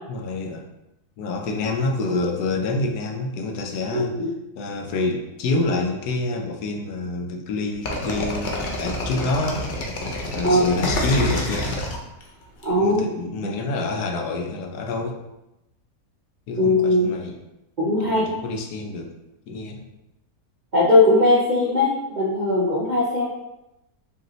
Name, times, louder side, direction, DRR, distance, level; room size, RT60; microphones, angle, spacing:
voice 1, 0.1-0.7 1.2-4.2 4.6-9.6 10.3-11.7 12.8-15.2 16.5-17.4 18.0-19.1 19.5-19.9, left 2 dB, 75° left, 2 dB, 1.1 m, -27 dB
sound 1, 7.8-12.6, left 1 dB, 55° left, 0.5 m, -27 dB
voice 2, 12.6-13.0 13.4-13.5 16.6-17.1 17.8-18.2 20.7-23.3, left 1 dB, 50° right, -6 dB, 0.5 m, -19 dB
5.0 x 3.2 x 3.0 m, 0.92 s
omnidirectional pair, 1.7 m